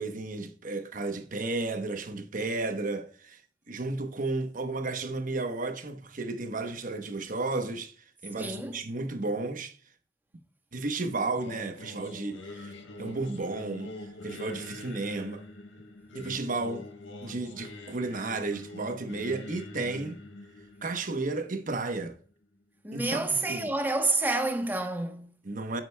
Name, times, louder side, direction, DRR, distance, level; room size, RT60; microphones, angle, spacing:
voice 1, 0.0-3.4 3.7-9.8 10.7-12.7 13.0-15.4 16.1-16.9 17.2-20.2 20.8-22.2 22.9-23.7 25.4-25.8, right 3 dB, 45° right, 1.0 m, -33 dB
voice 2, 8.3-8.8 22.8-25.3, right 2 dB, 10° right, 0.9 m, -29 dB
Singing, 11.3-22.4, left 2 dB, 90° left, 1.3 m, -45 dB
8.9 x 7.7 x 2.2 m
head